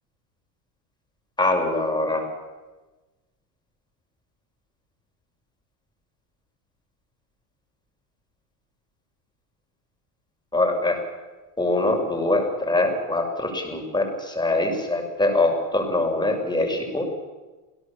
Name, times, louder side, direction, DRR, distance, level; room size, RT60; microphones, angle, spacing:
voice 1, 1.4-2.3 10.5-11.0 11.6-17.0, left 2 dB, 10° left, 2 dB, 6.3 m, -23 dB
28.5 x 17.5 x 7.3 m, 1.2 s
supercardioid pair, 105°, 47 cm